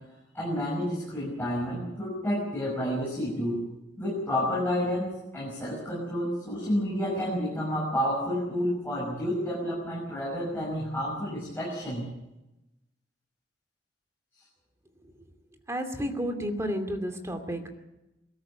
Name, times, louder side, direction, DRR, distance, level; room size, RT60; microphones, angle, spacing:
voice 1, 0.3-3.6 4.0-12.0, equal, 10° left, -5 dB, 6.1 m, -30 dB
voice 2, 15.7-17.7, equal, 15° right, 5 dB, 2.6 m, -31 dB
22.5 x 13.5 x 8.6 m, 0.94 s
head